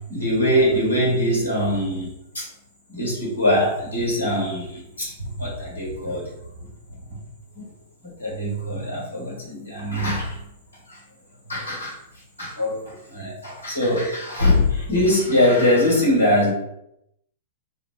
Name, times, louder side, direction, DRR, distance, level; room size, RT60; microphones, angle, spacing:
voice 1, 0.1-2.1 2.3-2.4 2.9-6.3 7.5-7.6 8.2-10.4 10.9-11.0 11.5-12.0 12.4-16.5, left 1 dB, 80° left, -4 dB, 1.4 m, -22 dB
3.7 x 2.1 x 2.4 m, 0.79 s
figure-of-eight pair, 100°, 0 cm